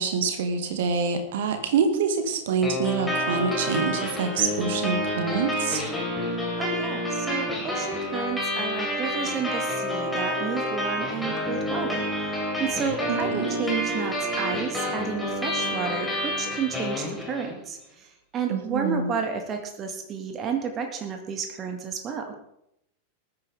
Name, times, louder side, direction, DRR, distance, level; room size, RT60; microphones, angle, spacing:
voice 1, 0.0-5.8 13.1-13.5 18.5-19.1, right 5 dB, 55° right, 6 dB, 2.1 m, -26 dB
sound 1, 2.6-17.6, equal, 5° left, 4.3 m, -29 dB
voice 2, 6.6-22.4, right 6 dB, 30° right, 5 dB, 1.9 m, -32 dB
20.0 x 9.7 x 3.6 m, 0.78 s
figure-of-eight pair, 90°, 0 cm